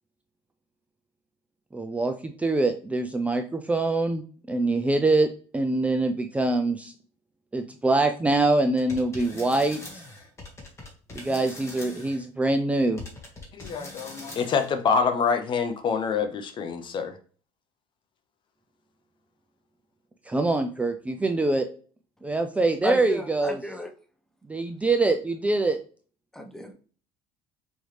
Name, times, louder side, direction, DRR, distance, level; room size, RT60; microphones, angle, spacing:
voice 1, 1.7-4.2 4.5-6.9 7.5-10.0 11.2-13.0 20.3-21.7 22.2-23.6 24.5-25.8, right 2 dB, 10° right, 0.4 m, -24 dB
sound 1, 8.8-12.2 13.0-15.0, left 2 dB, 25° left, 1.8 m, -42 dB
voice 2, 13.6-17.2, left 5 dB, 45° left, 0.7 m, -26 dB
voice 3, 22.8-23.9 26.3-26.7, left 2 dB, 5° left, 0.9 m, -32 dB
5.2 x 3.2 x 3.2 m
cardioid pair, 110°, 12 cm